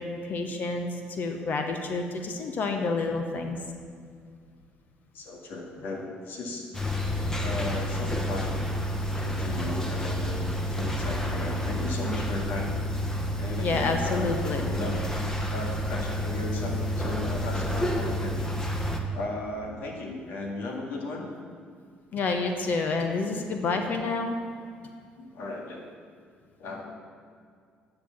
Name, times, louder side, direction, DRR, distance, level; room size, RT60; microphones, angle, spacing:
voice 1, 0.0-3.6 13.6-14.7 22.1-24.4, left 3 dB, 55° left, 5 dB, 1.0 m, -29 dB
voice 2, 5.1-6.7 7.4-8.6 9.2-12.7 13.4-15.0 15.5-18.4 19.1-21.2 25.2-25.9 26.6-26.8, left 2 dB, 80° left, 0 dB, 2.1 m, -36 dB
sound 1, 6.7-19.0, equal, 15° left, 1.2 m, -29 dB
10.0 x 6.9 x 7.2 m, 2.2 s
cardioid pair, 100°, 4 cm